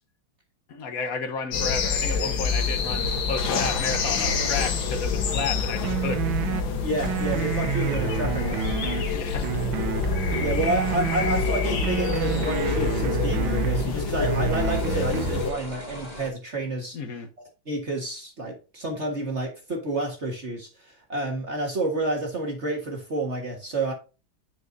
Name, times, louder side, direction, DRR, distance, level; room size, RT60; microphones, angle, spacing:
voice 1, 0.7-6.2 9.1-9.5 16.9-17.3, left 5 dB, 50° left, 1.3 m, -32 dB
sound 1, 1.5-15.5, left 4 dB, 75° left, 2.0 m, -27 dB
sound 2, 5.8-6.6 7.0-9.0 9.4-11.4 11.8-13.8 14.2-15.4, right 12 dB, 85° right, 1.5 m, -29 dB
voice 2, 6.8-8.7 10.4-17.0 17.7-23.9, right 1 dB, 35° right, 1.7 m, -29 dB
sound 3, 11.3-16.3, equal, 20° left, 2.8 m, -41 dB
10.0 x 5.3 x 2.6 m
omnidirectional pair, 2.2 m